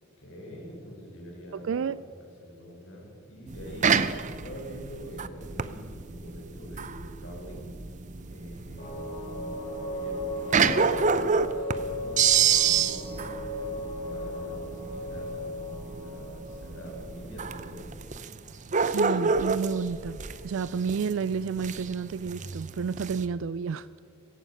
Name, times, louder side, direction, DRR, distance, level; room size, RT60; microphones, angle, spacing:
voice 1, 0.2-3.9 4.3-7.7 8.3-10.7 11.5-17.8, equal, 75° left, 5.3 m, -45 dB
voice 2, 1.5-2.0 3.9-4.1 18.8-20.2 20.4-23.9, right 6 dB, 80° right, 0.4 m, -31 dB
sound 1, 3.5-23.3, right 6 dB, 40° right, 0.6 m, -29 dB
sound 2, 8.8-17.8, left 1 dB, 45° left, 3.0 m, -37 dB
17.5 x 14.5 x 5.6 m
head